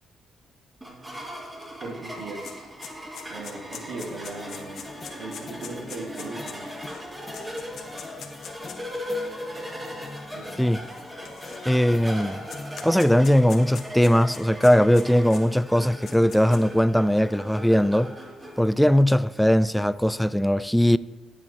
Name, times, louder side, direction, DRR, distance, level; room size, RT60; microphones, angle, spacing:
sound 1, 0.8-18.6, equal, 15° right, 1.9 m, -38 dB
sound 2, 1.6-1.7 2.0-8.9 9.7-9.8 10.8-11.9 12.2-15.4 15.8-16.8, left 7 dB, 65° left, 1.2 m, -42 dB
voice 1, 1.8-2.7 3.3-4.9 5.1-6.7 10.3-10.6, right 3 dB, 70° right, 1.9 m, -38 dB
sound 3, 4.0-18.8, left 3 dB, 30° left, 0.8 m, -45 dB
voice 2, 11.7-12.4 12.8-18.1 18.6-21.0, equal, ahead, 0.3 m, -20 dB
19.0 x 7.5 x 2.8 m
cardioid pair, 90°, 0 cm